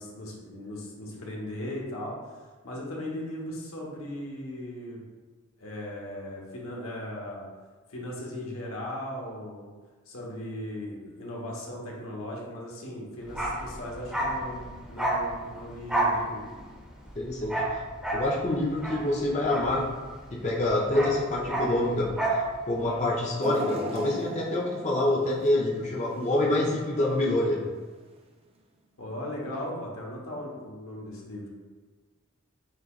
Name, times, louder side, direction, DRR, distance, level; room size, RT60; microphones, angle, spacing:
voice 1, 0.0-2.2 2.6-5.0 5.6-7.5 7.9-9.7 10.1-16.4 29.0-31.5, left 1 dB, 85° left, -2 dB, 1.0 m, -37 dB
Bark, 13.3-20.3 20.6-22.5 22.7-22.9, right 1 dB, 5° right, 0.8 m, -30 dB
voice 2, 17.2-17.6 18.1-19.9 20.3-22.2 22.7-27.7, left 1 dB, 35° left, -4 dB, 0.6 m, -26 dB
sound 1, 23.4-26.6 27.0-27.1 28.2-28.3, right 1 dB, 30° right, 0.4 m, -38 dB
6.4 x 2.9 x 2.4 m, 1.4 s
head